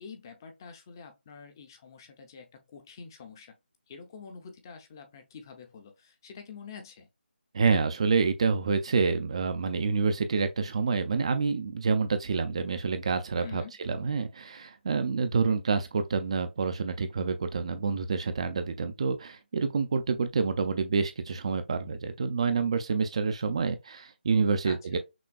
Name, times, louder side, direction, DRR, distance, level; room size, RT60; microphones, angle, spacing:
voice 1, 0.0-3.5 3.9-7.1 13.4-13.8 24.6-25.0, left 6 dB, 20° left, 0.6 m, -47 dB
voice 2, 7.5-25.0, right 5 dB, 30° right, 0.4 m, -28 dB
6.0 x 2.2 x 2.3 m
figure-of-eight pair, 165°, 6 cm